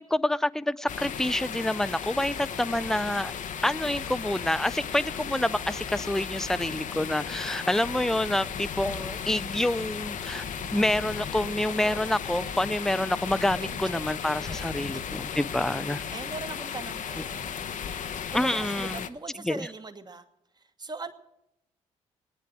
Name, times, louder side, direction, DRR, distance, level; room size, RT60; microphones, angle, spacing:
voice 1, 0.0-3.3 3.6-10.5 10.7-16.0 18.3-19.0 19.4-19.6, left 1 dB, 5° left, 18 dB, 0.4 m, -27 dB
sound 1, 0.9-19.1, left 8 dB, 50° left, 0.7 m, -35 dB
voice 2, 2.8-3.1 7.6-7.9 13.5-15.4 16.1-20.3 20.5-21.1, right 3 dB, 25° right, 9 dB, 1.3 m, -42 dB
sound 2, 3.1-18.8 19.1-19.2, right 9 dB, 60° right, 0.9 m, -50 dB
19.5 x 9.5 x 6.1 m, 0.83 s
hypercardioid pair, 40°, 16 cm